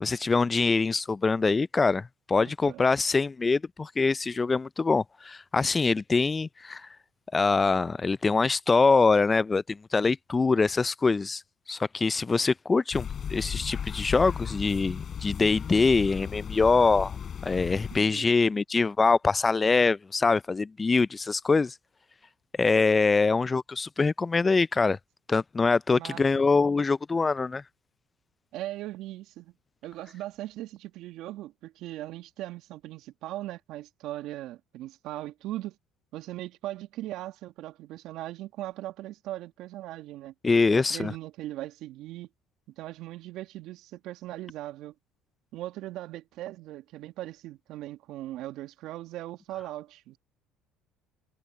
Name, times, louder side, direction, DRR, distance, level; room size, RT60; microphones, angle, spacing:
voice 1, 0.0-6.9 7.3-11.4 11.7-17.2 17.4-21.7 22.6-25.0 25.3-27.6 40.4-41.1, left 4 dB, 25° left, 0.4 m, -24 dB
voice 2, 2.4-2.8 17.9-18.3 25.9-26.4 28.5-29.5 29.8-35.8 36.1-40.3 40.7-42.3 42.8-44.9 45.5-50.2, right 15 dB, 70° right, 1.8 m, -39 dB
sound 1, 12.9-18.0, left 8 dB, 45° left, 3.5 m, -35 dB
hypercardioid pair, 70°, 0 cm